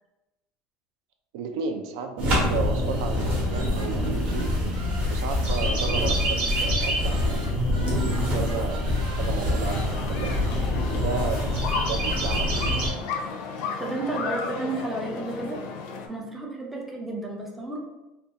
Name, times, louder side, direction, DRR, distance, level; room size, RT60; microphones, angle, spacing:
voice 1, 1.3-4.6 5.1-7.5 8.0-10.4 10.9-11.6 11.9-12.8, right 5 dB, 80° right, 5 dB, 0.3 m, -33 dB
sound 1, 2.2-12.9, left 1 dB, 40° right, 0.9 m, -25 dB
sound 2, 3.2-10.2, right 1 dB, 65° right, 1.1 m, -40 dB
sound 3, 9.6-16.1, left 5 dB, 65° left, 0.4 m, -34 dB
voice 2, 13.8-15.6 16.1-17.8, right 2 dB, 5° right, -1 dB, 0.4 m, -32 dB
2.5 x 2.2 x 2.7 m, 1.0 s
cardioid pair, 155°, 3 cm